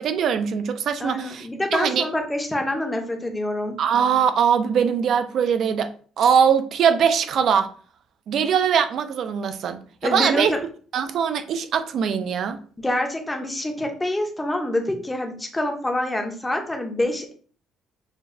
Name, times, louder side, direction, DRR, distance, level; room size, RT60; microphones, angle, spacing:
voice 1, 0.0-2.1 3.8-5.9 6.2-7.7 8.3-10.5 10.9-12.6, right 7 dB, 50° right, 9 dB, 0.4 m, -21 dB
voice 2, 1.0-3.8 10.0-10.6 12.8-17.3, left 1 dB, 10° left, 3 dB, 0.6 m, -26 dB
6.5 x 2.2 x 2.6 m, 0.44 s
cardioid pair, 165°, 0 cm